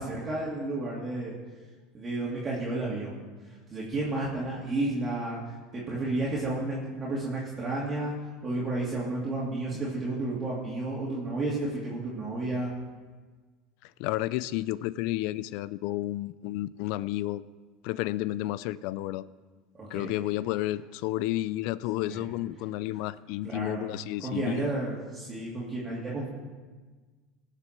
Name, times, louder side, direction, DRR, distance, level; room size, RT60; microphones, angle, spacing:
voice 1, 0.0-1.3 1.9-3.2 3.5-5.4 5.7-8.1 8.4-12.7 19.8-20.1 22.1-22.2 23.4-23.9 24.2-26.3, right 2 dB, 25° right, -6 dB, 2.9 m, -32 dB
voice 2, 13.8-17.4 17.8-19.3 19.9-24.7, left 16 dB, 65° left, 19 dB, 0.4 m, -31 dB
18.5 x 6.6 x 4.5 m, 1.4 s
supercardioid pair, 95°, 0 cm